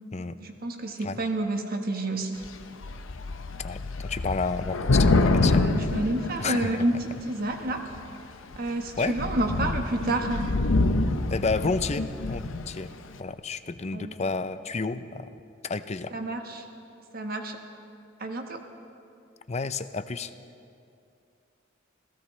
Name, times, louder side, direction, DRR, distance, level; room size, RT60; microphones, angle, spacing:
voice 1, 0.4-2.4 5.5-6.9 7.3-7.8 8.6-10.5 13.9-14.1 16.1-16.6 17.1-17.6 18.2-18.6, right 2 dB, 50° right, 4 dB, 1.3 m, -29 dB
Thunder / Rain, 2.4-2.6 2.8-6.9 7.7-8.1 8.5-8.7 9.0-12.7, left 2 dB, 85° left, 0.9 m, -26 dB
voice 2, 3.6-5.6 6.4-6.8 9.0-9.1 11.3-12.9 13.2-15.3 15.6-16.1 19.5-20.3, left 4 dB, 35° left, 11 dB, 0.5 m, -30 dB
27.5 x 16.0 x 3.2 m, 2.6 s
head